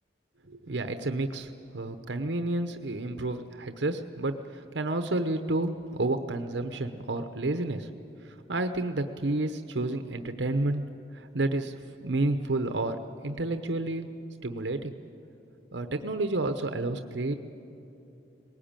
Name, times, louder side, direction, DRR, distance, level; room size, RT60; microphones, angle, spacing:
voice 1, 0.5-7.9 8.5-10.9 11.1-11.7 12.0-14.1 14.4-14.9 15.7-17.3, right 2 dB, 80° right, 8 dB, 0.9 m, -30 dB
20.0 x 18.0 x 8.9 m, 2.8 s
head